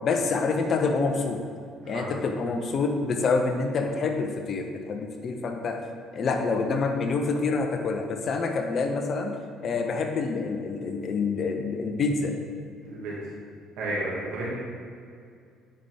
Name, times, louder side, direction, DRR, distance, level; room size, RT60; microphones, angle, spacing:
voice 1, 0.0-1.4 1.9-5.8 6.1-9.3 9.6-12.3, left 4 dB, 50° left, 4 dB, 0.9 m, -27 dB
voice 2, 12.8-13.2 13.8-14.5, right 2 dB, 70° right, -5 dB, 1.9 m, -31 dB
8.8 x 5.8 x 3.4 m, 2.3 s
hypercardioid pair, 55°, 0 cm